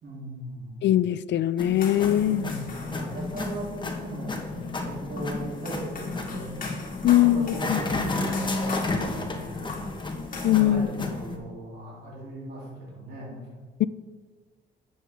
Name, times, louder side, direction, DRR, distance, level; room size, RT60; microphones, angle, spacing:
voice 1, 0.0-0.8 2.2-6.5 7.1-8.9 9.1-9.8 10.4-13.4, right 1 dB, 55° right, -5 dB, 3.2 m, -38 dB
voice 2, 0.8-2.5 7.0-7.8 10.4-10.9 13.8-13.9, left 12 dB, 65° left, 17 dB, 0.4 m, -21 dB
sound 1, 1.6-11.4, left 2 dB, 25° left, 1.4 m, -32 dB
sound 2, 1.8-10.7, left 3 dB, 45° left, 2.1 m, -42 dB
11.0 x 7.7 x 3.6 m, 1.4 s
cardioid pair, 90°, 20 cm